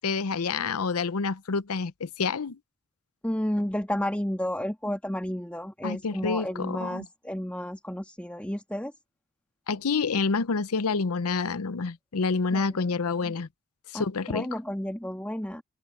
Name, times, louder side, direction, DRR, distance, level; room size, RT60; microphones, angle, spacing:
voice 1, 0.0-2.6 5.8-7.1 9.7-13.5 13.9-14.5, left 4 dB, 85° left, 0.7 m, -28 dB
voice 2, 3.2-8.9 12.5-12.8 13.9-15.6, equal, 5° left, 1.9 m, -32 dB
head